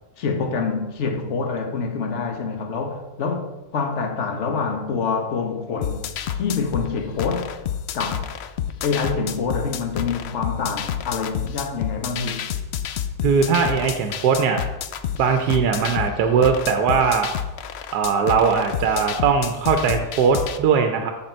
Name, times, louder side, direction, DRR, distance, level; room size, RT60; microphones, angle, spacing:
voice 1, 0.2-6.0 6.3-7.5 7.9-8.3 8.8-12.5, left 5 dB, 50° left, 1.2 m, -26 dB
sound 1, 5.8-20.6, left 9 dB, 85° left, 0.5 m, -29 dB
voice 2, 13.2-14.6 15.2-17.3 17.9-21.1, right 6 dB, 90° right, 1.2 m, -20 dB
8.7 x 5.9 x 4.4 m
omnidirectional pair, 1.7 m